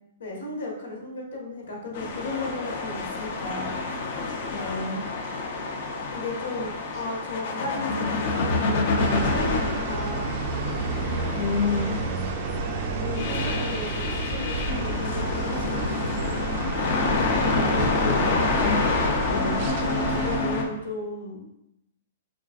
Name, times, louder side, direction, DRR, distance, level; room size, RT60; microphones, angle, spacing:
voice 1, 0.2-3.7 6.1-10.3 12.9-15.9 17.6-18.4 19.8-21.5, left 2 dB, 85° left, -1 dB, 1.3 m, -35 dB
sound 1, 1.9-20.6, left 3 dB, 45° left, 0.6 m, -28 dB
voice 2, 4.5-5.1 11.3-12.0 18.5-18.8 19.3-19.7, left 4 dB, 15° left, -6 dB, 1.1 m, -28 dB
sound 2, 9.0-20.4, right 4 dB, 35° right, 0.4 m, -31 dB
5.9 x 2.4 x 2.4 m, 0.85 s
hypercardioid pair, 170°, 0 cm